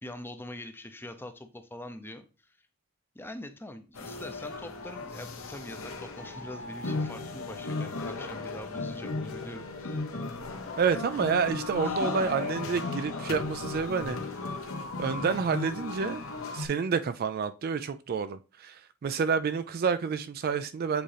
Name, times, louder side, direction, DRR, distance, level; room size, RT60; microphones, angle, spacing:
voice 1, 0.0-2.6 3.1-10.0 11.8-11.9 12.2-12.3, left 1 dB, 10° left, 0.6 m, -44 dB
sound 1, 3.9-16.7, left 3 dB, 65° left, 1.0 m, -36 dB
voice 2, 10.8-14.2 15.0-16.2 16.5-21.0, right 6 dB, 45° right, 0.3 m, -29 dB
7.8 x 3.7 x 3.3 m
head